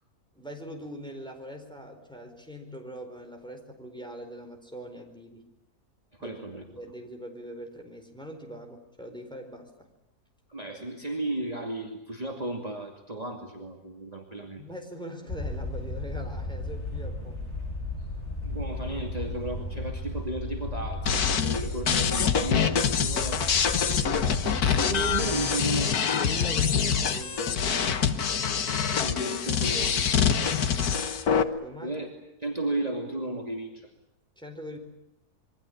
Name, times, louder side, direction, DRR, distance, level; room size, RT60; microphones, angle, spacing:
voice 1, 0.3-5.4 6.2-6.4 6.7-9.9 14.6-17.5 23.8-25.1 26.1-28.0 31.6-32.0 34.4-34.8, equal, 5° left, 3 dB, 4.4 m, -42 dB
voice 2, 6.1-6.6 10.5-14.6 18.4-23.5 23.9-24.0 24.9-26.4 29.0-30.0 31.8-32.1 32.4-33.9, right 2 dB, 25° right, 2 dB, 2.7 m, -34 dB
sound 1, 15.3-25.2, left 2 dB, 45° left, 7.9 m, -34 dB
sound 2, 21.1-31.4, left 7 dB, 80° left, 1.8 m, -25 dB
27.0 x 23.5 x 8.7 m, 0.80 s
omnidirectional pair, 1.6 m